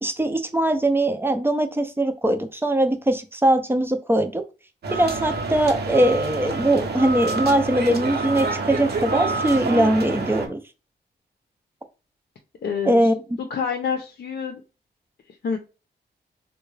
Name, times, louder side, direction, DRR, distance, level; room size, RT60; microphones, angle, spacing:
voice 1, 0.0-4.4 4.9-10.6 12.8-13.2, right 1 dB, 15° right, 8 dB, 0.5 m, -21 dB
sound 1, 4.8-10.5, right 3 dB, 65° right, 0.9 m, -27 dB
voice 2, 12.6-13.0 13.4-14.6 15.4-15.6, left 6 dB, 65° left, 4 dB, 0.6 m, -27 dB
3.7 x 2.2 x 3.1 m, 0.31 s
wide cardioid pair, 120°, 18 cm